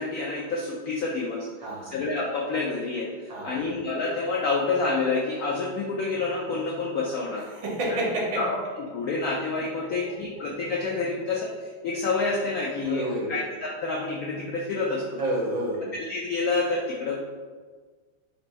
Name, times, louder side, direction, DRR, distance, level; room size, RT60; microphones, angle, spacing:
voice 1, 0.0-1.5 1.9-7.5 7.9-8.0 8.4-8.6 8.9-15.2 15.9-17.2, left 3 dB, 80° left, -2 dB, 0.8 m, -28 dB
voice 2, 1.6-1.9 3.3-3.6 7.5-8.5 9.8-10.2 12.7-13.4 15.2-15.9, right 1 dB, 70° right, -4 dB, 1.8 m, -29 dB
4.2 x 2.6 x 4.2 m, 1.5 s
omnidirectional pair, 2.2 m